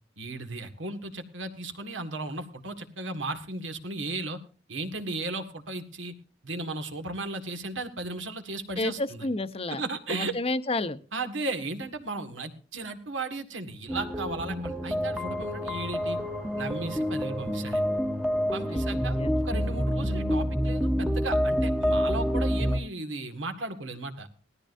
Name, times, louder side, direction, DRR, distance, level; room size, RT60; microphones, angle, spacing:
voice 1, 0.2-4.4 4.7-6.1 6.4-9.3 9.7-10.4 11.1-16.2 16.6-17.9 18.5-24.3, right 2 dB, 85° right, 7 dB, 1.9 m, -35 dB
voice 2, 8.8-9.8 10.1-11.0 18.6-19.4, left 2 dB, 30° left, 12 dB, 0.8 m, -31 dB
sound 1, 13.9-22.8, equal, 5° right, 0.9 m, -28 dB
19.0 x 13.5 x 2.7 m, 0.36 s
head